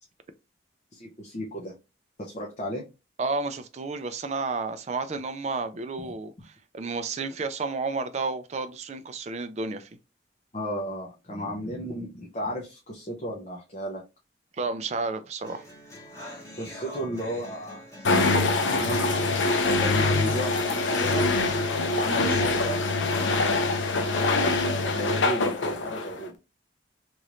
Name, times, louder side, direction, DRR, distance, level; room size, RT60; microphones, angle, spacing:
voice 1, 0.9-1.7 2.2-2.8 6.0-6.1 10.5-14.0 16.6-17.8 18.4-21.3 21.9-22.9 24.1-26.3, equal, 35° left, 0.6 m, -34 dB
voice 2, 3.2-9.9 14.6-15.6, right 3 dB, 35° right, 0.4 m, -31 dB
sound 1, 15.4-23.4, equal, 15° left, 1.0 m, -42 dB
sound 2, 18.0-26.3, left 3 dB, 80° left, 0.6 m, -24 dB
3.0 x 2.5 x 2.9 m
head